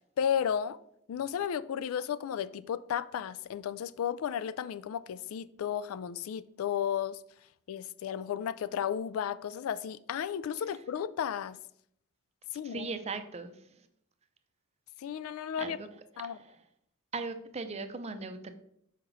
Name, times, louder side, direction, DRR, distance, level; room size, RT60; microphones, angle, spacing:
voice 1, 0.2-0.8 1.1-7.2 7.7-11.6 12.5-12.9 15.0-15.8 16.2-16.4, left 8 dB, 70° left, 0.3 m, -33 dB
voice 2, 12.6-13.9 15.6-15.9 16.3-16.6 17.1-18.5, right 4 dB, 30° right, 0.5 m, -39 dB
5.8 x 4.9 x 3.9 m
head